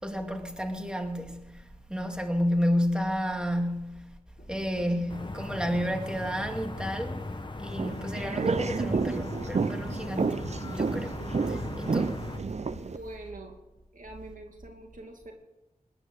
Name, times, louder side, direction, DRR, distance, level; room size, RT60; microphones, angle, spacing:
voice 1, 0.0-4.1 4.5-7.2 7.6-10.4 10.7-11.2 11.5-12.2, equal, 5° right, 2.4 m, -31 dB
sound 1, 4.4-12.8, left 2 dB, 55° left, 2.9 m, -47 dB
sound 2, 5.1-12.4, left 2 dB, 35° left, 1.3 m, -38 dB
sound 3, 7.7-13.0, right 5 dB, 50° right, 0.6 m, -30 dB
voice 2, 12.8-13.6 13.9-15.3, right 1 dB, 70° right, 2.4 m, -44 dB
19.5 x 10.0 x 6.5 m
cardioid pair, 45°, 14 cm